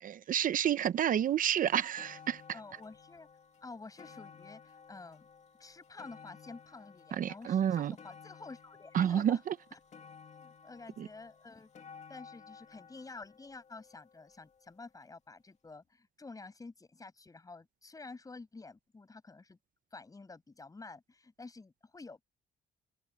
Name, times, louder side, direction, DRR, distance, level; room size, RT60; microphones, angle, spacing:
voice 1, 0.0-2.4 7.1-7.9 8.9-9.5 11.0-11.1, right 9 dB, 55° right, 0.7 m, -29 dB
sound 1, 1.2-1.3 1.7-14.9 15.6-15.7, left 6 dB, 45° left, 2.2 m, -56 dB
voice 2, 2.5-3.3 3.6-5.3 5.6-9.4 9.7-9.8 10.3-11.7 12.1-19.6 19.9-22.2, left 3 dB, 20° left, 7.7 m, -50 dB
cardioid pair, 120°, 16 cm